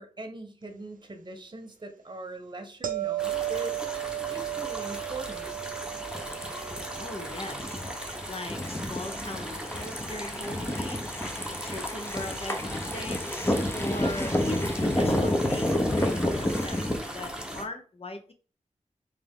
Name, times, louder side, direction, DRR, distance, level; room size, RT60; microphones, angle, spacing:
voice 1, 0.0-3.8 4.3-5.5, right 2 dB, 35° right, 6 dB, 1.0 m, -41 dB
sound 1, 2.8-9.8 15.1-15.3, right 15 dB, 85° right, 0.5 m, -36 dB
sound 2, 3.2-17.7, equal, 5° right, 1.0 m, -38 dB
sound 3, 6.1-17.0, left 1 dB, 15° left, 0.8 m, -30 dB
voice 2, 7.0-7.8 8.3-11.0 11.6-18.3, left 2 dB, 45° left, 7 dB, 0.9 m, -40 dB
3.5 x 3.3 x 3.6 m, 0.38 s
cardioid pair, 45°, 14 cm